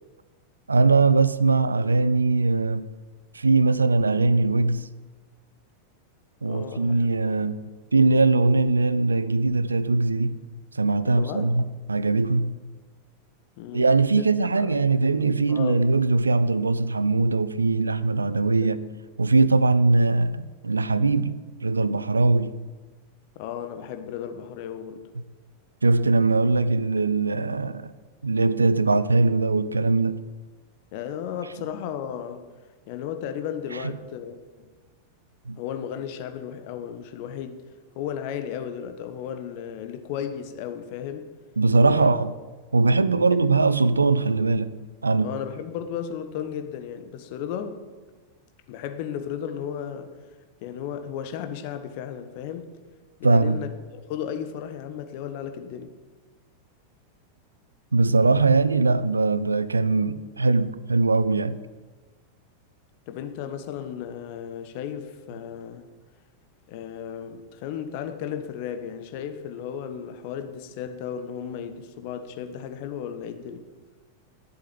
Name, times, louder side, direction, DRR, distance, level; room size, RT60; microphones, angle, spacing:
voice 1, 0.7-2.9 3.3-4.9 6.4-7.6 7.9-10.4 10.7-12.5 13.7-18.8 19.2-22.5 25.8-27.9 28.2-30.2 35.5-35.6 41.6-42.3 42.7-44.7 45.0-45.3 53.2-53.6 57.9-61.6, right 3 dB, 80° right, 0.5 m, -21 dB
voice 2, 6.4-6.9 7.2-7.4 11.0-11.6 13.6-14.2 14.6-14.7 15.5-15.8 18.6-18.8 23.3-25.1 30.9-32.4 32.9-34.7 35.6-37.7 37.9-41.3 41.8-42.1 45.2-47.8 48.7-50.1 50.6-52.8 53.2-53.7 54.1-56.0 63.1-65.9 66.7-73.6, left 8 dB, 45° left, 1.2 m, -34 dB
11.0 x 7.8 x 8.6 m
figure-of-eight pair, 90°, 0 cm